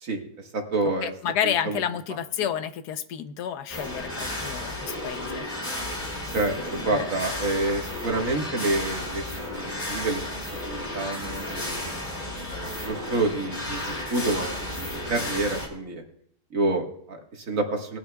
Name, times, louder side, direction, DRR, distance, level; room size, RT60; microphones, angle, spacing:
voice 1, 0.0-1.1 1.4-1.8 6.3-9.2 9.9-10.2 10.5-11.8 12.4-16.0 16.5-18.0, right 2 dB, 55° right, 2 dB, 1.9 m, -28 dB
voice 2, 1.0-5.5 6.8-7.1, left 9 dB, 80° left, 11 dB, 1.3 m, -30 dB
sound 1, 3.7-15.7, left 1 dB, 30° left, 2.7 m, -33 dB
20.0 x 11.5 x 2.3 m, 0.66 s
omnidirectional pair, 1.7 m